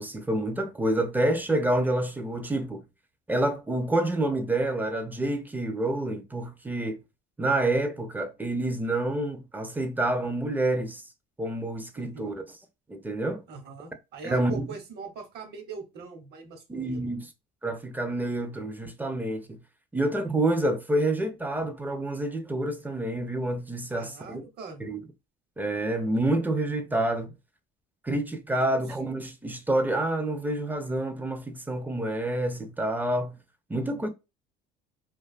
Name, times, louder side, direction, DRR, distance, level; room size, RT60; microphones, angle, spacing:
voice 1, 0.0-2.8 3.3-7.0 7.4-11.0 11.4-12.4 12.9-13.4 14.2-14.7 16.7-17.3 17.6-19.6 19.9-24.4 24.8-25.0 25.6-27.3 28.0-33.4 33.7-34.1, right 1 dB, 10° right, 0.4 m, -28 dB
voice 2, 11.9-12.3 13.5-17.1 23.9-24.9 28.6-29.0 33.8-34.1, right 4 dB, 50° right, 0.9 m, -42 dB
2.5 x 2.3 x 2.3 m
cardioid pair, 110°, 21 cm